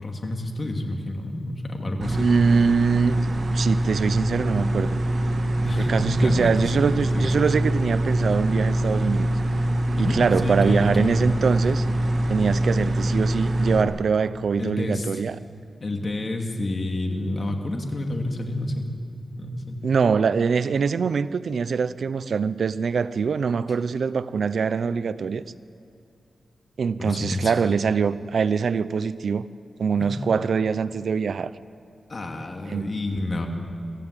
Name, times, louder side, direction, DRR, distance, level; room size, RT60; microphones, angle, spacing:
voice 1, 0.0-2.3 5.6-6.9 7.1-7.5 10.0-11.3 14.6-15.2 15.8-18.9 19.4-19.8 27.0-27.5 30.0-30.2 32.1-33.5, left 1 dB, 45° left, 2.5 m, -29 dB
sound 1, 2.0-13.8, right 1 dB, 55° right, 2.1 m, -24 dB
voice 2, 2.1-3.2 3.5-5.0 5.8-9.3 10.0-11.9 12.3-15.4 19.8-25.4 26.8-29.5 29.8-31.5 32.7-32.9, right 5 dB, 75° right, 0.6 m, -23 dB
23.0 x 15.0 x 8.3 m
wide cardioid pair, 95°, 0 cm